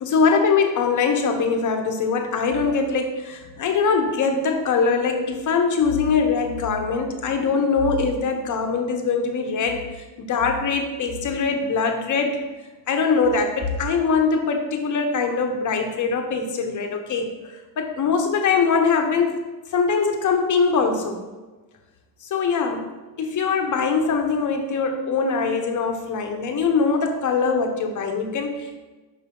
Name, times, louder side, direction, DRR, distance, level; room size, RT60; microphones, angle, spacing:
voice 1, 0.0-12.4 12.9-21.2 22.2-22.9 23.2-28.8, left 5 dB, 35° left, 4 dB, 1.1 m, -22 dB
5.6 x 5.0 x 3.8 m, 1.2 s
supercardioid pair, 95°, 50 cm